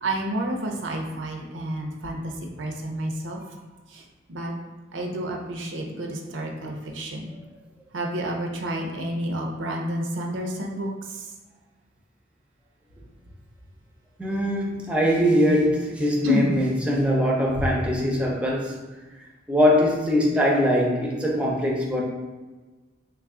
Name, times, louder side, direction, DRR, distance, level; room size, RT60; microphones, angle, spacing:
voice 1, 0.0-2.3 2.6-3.4 4.3-4.5 4.9-7.3 7.9-10.9 16.2-16.5, equal, 90° right, 1 dB, 0.6 m, -29 dB
voice 2, 14.2-18.8 19.5-22.0, equal, 5° right, -2 dB, 0.5 m, -22 dB
3.3 x 2.3 x 3.6 m, 1.2 s
head